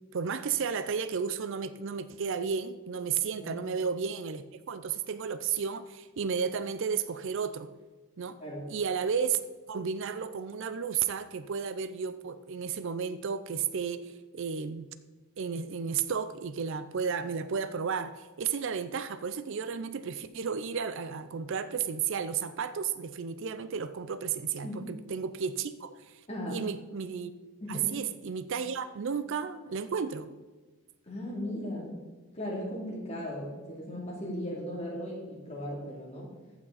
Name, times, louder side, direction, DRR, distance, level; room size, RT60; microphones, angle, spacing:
voice 1, 0.1-7.7 8.2-8.4 8.7-9.4 9.7-14.9 15.4-26.2 26.5-27.3 27.7-30.3, right 6 dB, 60° right, 0.4 m, -33 dB
voice 2, 26.3-26.6 27.6-27.9 31.1-32.0 32.3-36.3, equal, 30° left, 2.6 m, -37 dB
14.5 x 6.1 x 4.0 m
head